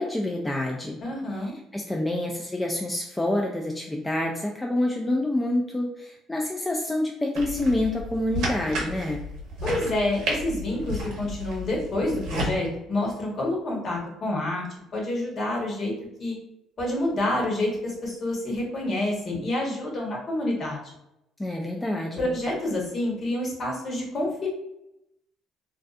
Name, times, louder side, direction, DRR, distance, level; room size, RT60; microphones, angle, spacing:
voice 1, 0.0-1.0 1.3-1.5 1.7-9.2 21.4-22.3, left 1 dB, 10° left, 0 dB, 0.3 m, -27 dB
voice 2, 1.0-1.5 9.6-14.7 14.9-15.9 16.2-16.4 16.8-20.9 22.2-24.5, left 1 dB, 45° left, -2 dB, 1.0 m, -28 dB
sound 1, 7.3-12.5, right 1 dB, 75° right, 0.7 m, -32 dB
2.6 x 2.3 x 2.3 m, 0.85 s
supercardioid pair, 85°, 0 cm